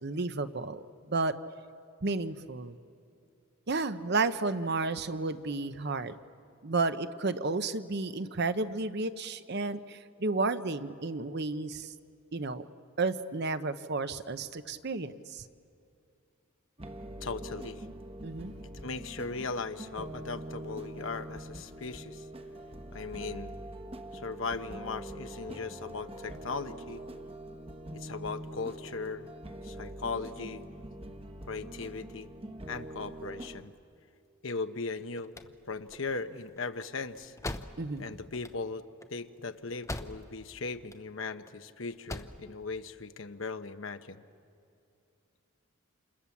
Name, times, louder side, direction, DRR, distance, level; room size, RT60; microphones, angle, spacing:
voice 1, 0.0-1.3 2.0-2.8 3.7-6.1 6.6-11.9 12.3-12.6 13.0-15.4 18.2-18.5 37.8-38.1, right 3 dB, 50° right, 11 dB, 0.8 m, -32 dB
sound 1, 16.8-33.6, right 1 dB, 25° right, 1.2 m, -44 dB
voice 2, 17.2-17.9 18.8-22.3 22.9-23.5 24.1-27.0 27.9-29.3 29.6-30.6 31.5-32.3 32.7-33.7 34.4-35.3 35.7-37.3 38.0-44.2, left 4 dB, 65° left, 10 dB, 1.0 m, -38 dB
sound 2, 35.1-40.5 40.8-41.5 41.9-42.5, left 1 dB, 15° left, 0.8 m, -42 dB
29.0 x 28.0 x 7.2 m, 2.5 s
head